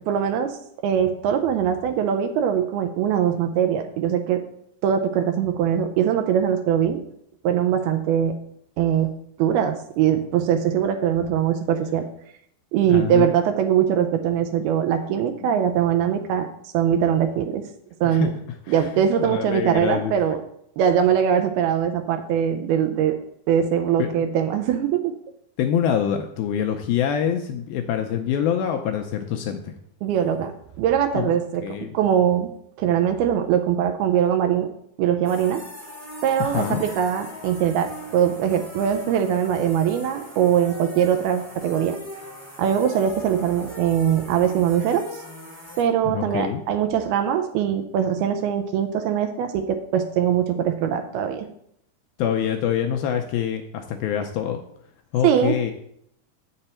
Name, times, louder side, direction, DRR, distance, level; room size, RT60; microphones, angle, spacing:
voice 1, 0.1-0.6 0.8-4.4 4.8-7.0 7.4-8.4 8.8-9.1 9.4-12.1 12.7-16.5 16.7-17.7 18.0-18.3 18.7-20.4 20.8-23.2 23.5-25.2 30.0-32.5 32.8-34.7 35.0-35.6 36.2-42.0 42.6-45.1 45.8-51.5 55.2-55.6, right 9 dB, 80° right, 6 dB, 2.4 m, -22 dB
voice 2, 12.9-13.3 15.4-15.6 18.0-18.3 18.7-18.8 19.2-20.1 24.0-24.3 25.6-29.7 31.1-31.9 36.4-36.8 46.0-46.6 52.2-54.6 55.1-55.7, left 9 dB, 80° left, 5 dB, 2.2 m, -25 dB
sound 1, 35.2-45.8, left 1 dB, 5° right, 1.2 m, -40 dB
7.9 x 6.7 x 4.3 m, 0.70 s
omnidirectional pair, 4.7 m